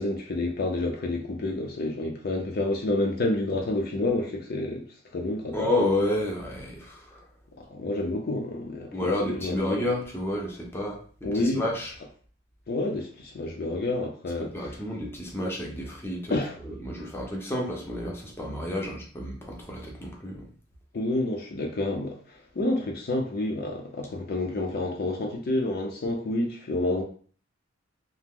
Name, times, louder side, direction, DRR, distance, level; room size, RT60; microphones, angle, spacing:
voice 1, 0.0-4.9 5.1-5.7 7.6-9.8 11.2-11.7 12.7-14.8 16.3-16.6 20.9-22.2 22.6-27.0, left 2 dB, 50° left, 0.5 m, -29 dB
voice 2, 5.5-7.2 8.9-11.0 11.4-11.9 14.5-16.4 16.6-20.5, left 1 dB, 10° left, 0.6 m, -30 dB
2.9 x 2.0 x 3.5 m
head